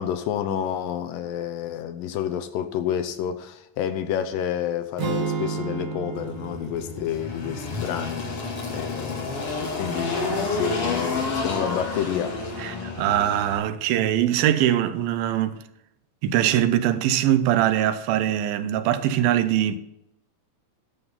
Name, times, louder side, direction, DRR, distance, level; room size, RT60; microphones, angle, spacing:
voice 1, 0.0-12.3, left 9 dB, 75° left, 2.4 m, -29 dB
sound 1, 5.0-9.1, right 5 dB, 50° right, 2.2 m, -33 dB
Engine, 6.1-13.6, left 3 dB, 45° left, 3.0 m, -30 dB
voice 2, 12.6-15.6 16.2-19.8, right 11 dB, 85° right, 2.6 m, -22 dB
12.0 x 7.9 x 5.6 m
omnidirectional pair, 4.2 m